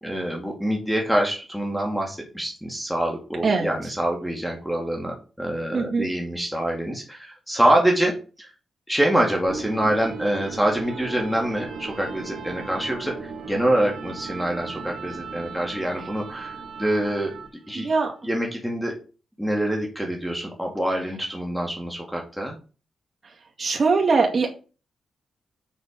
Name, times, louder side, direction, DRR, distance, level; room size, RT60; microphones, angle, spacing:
voice 1, 0.0-8.1 8.4-8.5 8.9-17.3 17.7-17.9 18.2-19.0 19.4-22.5, right 1 dB, ahead, 0 dB, 2.4 m, -25 dB
voice 2, 3.4-3.7 5.7-6.1 17.7-18.1 23.6-24.5, right 4 dB, 40° right, -1 dB, 2.1 m, -21 dB
sound 1, 9.5-17.7, right 4 dB, 65° right, 2.9 m, -36 dB
7.4 x 6.4 x 5.2 m, 0.34 s
cardioid pair, 95°, 0 cm